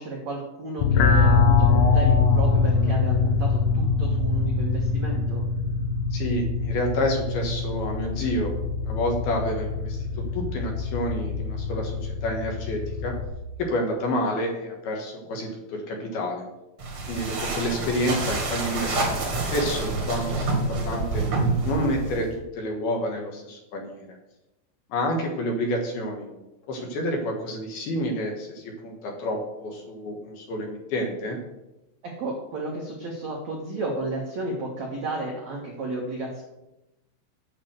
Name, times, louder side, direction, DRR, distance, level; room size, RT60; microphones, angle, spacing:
voice 1, 0.0-5.5 32.2-36.4, right 2 dB, 65° right, -2 dB, 1.7 m, -33 dB
sound 1, 0.8-13.3, left 4 dB, 90° left, 3.6 m, -23 dB
voice 2, 6.1-8.5 8.8-10.0 10.3-13.2 13.6-16.4 17.1-21.2 21.6-24.2 24.9-26.3 26.7-31.4, left 1 dB, 65° left, 1 dB, 3.0 m, -29 dB
sound 2, 16.8-22.3, right 3 dB, 45° right, 1.9 m, -27 dB
8.7 x 6.5 x 7.8 m, 0.96 s
omnidirectional pair, 5.4 m